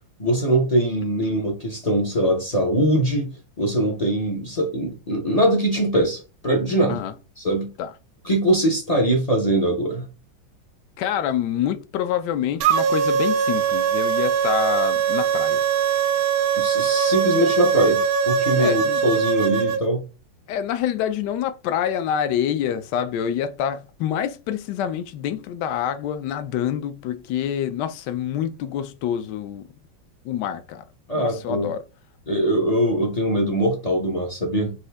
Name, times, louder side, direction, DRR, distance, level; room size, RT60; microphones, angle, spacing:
voice 1, 0.2-3.3 3.6-7.0 7.4-7.7 8.2-10.1 16.6-20.0 31.1-31.7 32.3-34.7, right 1 dB, 50° left, 0.4 m, -22 dB
voice 2, 11.0-15.6 18.6-19.0 20.5-29.7 30.2-30.8 31.1-31.8, left 9 dB, 75° left, 1.1 m, -26 dB
sound 1, 12.6-19.8, right 7 dB, 75° right, 1.1 m, -21 dB
5.5 x 2.6 x 3.4 m
omnidirectional pair, 2.1 m